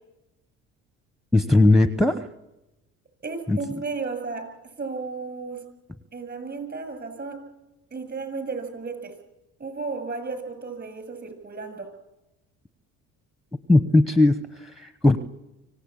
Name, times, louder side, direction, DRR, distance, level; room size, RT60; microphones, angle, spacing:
voice 1, 1.3-2.3 3.5-3.6 13.7-15.2, left 2 dB, ahead, 10 dB, 1.0 m, -18 dB
voice 2, 3.2-4.4 4.8-5.6 6.1-7.4 7.9-9.1 9.6-11.9, right 4 dB, 35° right, 8 dB, 7.3 m, -33 dB
25.0 x 17.0 x 8.8 m, 0.95 s
supercardioid pair, 95°, 31 cm